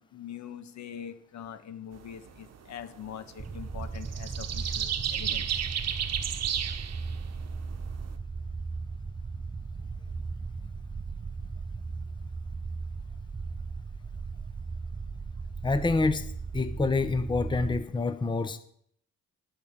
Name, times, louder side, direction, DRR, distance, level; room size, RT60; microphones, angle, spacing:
voice 1, 0.0-5.5, left 9 dB, 65° left, 9 dB, 1.4 m, -43 dB
sound 1, 2.0-2.3 2.8-2.9 3.1-3.6 3.9-8.1, right 9 dB, 60° right, 1.0 m, -32 dB
sound 2, 3.4-17.8, right 4 dB, 20° right, 0.5 m, -37 dB
voice 2, 15.6-18.6, left 3 dB, 15° left, 10 dB, 0.8 m, -27 dB
9.0 x 8.9 x 7.3 m, 0.69 s
cardioid pair, 90°, 30 cm